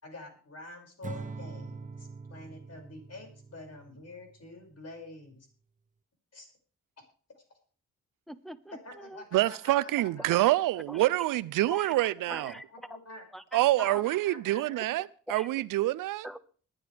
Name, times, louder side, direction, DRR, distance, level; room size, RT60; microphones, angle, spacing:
voice 1, 0.0-5.5 6.3-6.5 8.8-10.4 12.3-12.6 12.9-13.3 13.8-14.9, left 2 dB, 50° left, 6.0 m, -47 dB
Acoustic guitar / Strum, 1.0-4.4, right 4 dB, 25° right, 0.8 m, -43 dB
voice 2, 8.3-9.2 10.3-10.4 10.9-11.0 11.7-11.9 12.3-13.0 13.3-14.0 15.3-15.5 16.2-16.4, equal, ahead, 1.2 m, -43 dB
voice 3, 9.3-12.5 13.5-16.3, right 16 dB, 85° right, 0.5 m, -26 dB
22.0 x 10.0 x 3.4 m
cardioid pair, 60°, 32 cm